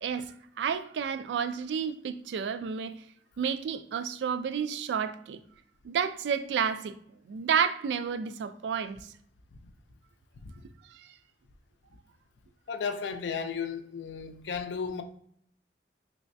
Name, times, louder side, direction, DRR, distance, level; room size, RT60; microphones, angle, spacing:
voice 1, 0.0-3.0 3.4-5.4 5.8-6.9 7.3-9.0 11.0-11.1, right 7 dB, 75° right, 0.3 m, -31 dB
voice 2, 12.7-15.0, left 6 dB, 85° left, 0.4 m, -34 dB
3.3 x 3.1 x 2.6 m
head